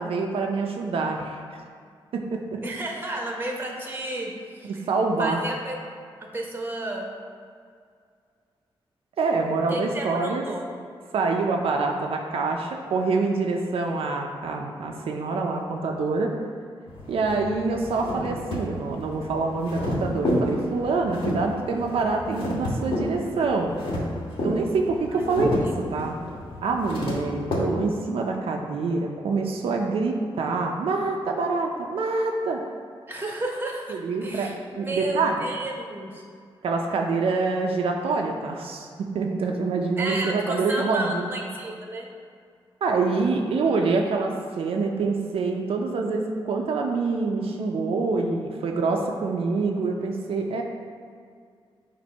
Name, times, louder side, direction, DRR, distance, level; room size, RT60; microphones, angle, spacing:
voice 1, 0.0-1.6 2.1-2.6 4.6-5.4 9.2-10.4 11.1-16.3 17.1-23.8 24.4-25.6 25.9-26.1 26.6-32.6 33.9-35.4 36.6-41.3 42.8-50.6, right 3 dB, 85° right, 1 dB, 0.5 m, -26 dB
voice 2, 2.6-4.8 5.2-5.8 6.2-7.1 9.7-10.6 25.1-25.9 33.1-36.2 40.0-42.1, right 1 dB, 20° right, 0 dB, 1.0 m, -32 dB
sound 1, 16.9-27.6, left 1 dB, 70° left, 1.4 m, -31 dB
7.2 x 2.6 x 5.3 m, 2.1 s
wide cardioid pair, 110°, 9 cm